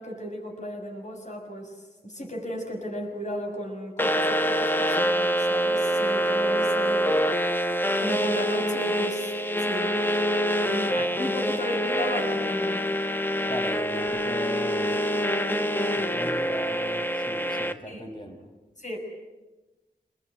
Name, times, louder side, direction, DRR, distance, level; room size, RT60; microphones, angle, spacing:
voice 1, 0.0-7.2 8.0-9.3 9.6-10.1 10.6-12.9 17.9-18.1 18.8-19.0, equal, 45° left, 2 dB, 6.8 m, -35 dB
sound 1, 4.0-17.7, equal, 10° left, 1.4 m, -25 dB
voice 2, 13.5-15.0 15.9-18.5, left 1 dB, 30° left, 3 dB, 5.5 m, -38 dB
26.5 x 21.5 x 9.4 m, 1.1 s
wide cardioid pair, 65°, 17 cm